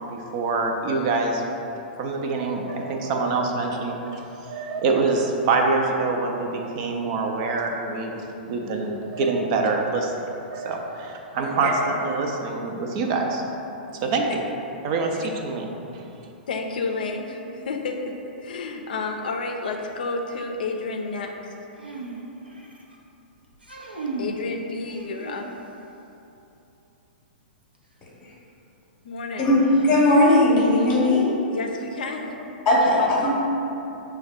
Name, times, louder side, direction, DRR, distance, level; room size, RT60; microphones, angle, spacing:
voice 1, 0.0-1.4 2.0-8.1 8.5-13.4 14.0-14.2 14.8-15.7, right 3 dB, 40° right, 2 dB, 0.4 m, -25 dB
voice 2, 16.5-18.1 18.4-21.5 24.2-25.4 29.0-29.6 31.5-32.3 33.0-33.3, left 3 dB, 60° left, 3 dB, 0.5 m, -30 dB
sound 1, 21.7-23.0 23.5-24.4 24.9-25.8 27.7-27.8 29.7-30.5, right 3 dB, 85° right, 0.6 m, -36 dB
voice 3, 29.8-31.2 32.7-33.3, left 1 dB, 25° left, -5 dB, 0.8 m, -18 dB
6.0 x 2.2 x 3.5 m, 2.9 s
figure-of-eight pair, 105°, 5 cm